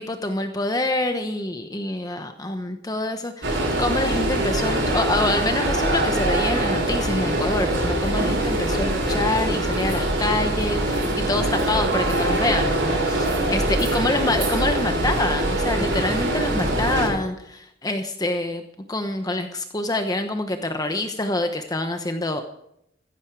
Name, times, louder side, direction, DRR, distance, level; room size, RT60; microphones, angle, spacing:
voice 1, 0.0-18.6 18.9-22.4, left 2 dB, 20° left, 6 dB, 1.0 m, -26 dB
sound 1, 3.4-17.1, right 1 dB, 75° right, 6.5 m, -23 dB
15.0 x 14.5 x 4.7 m, 0.77 s
head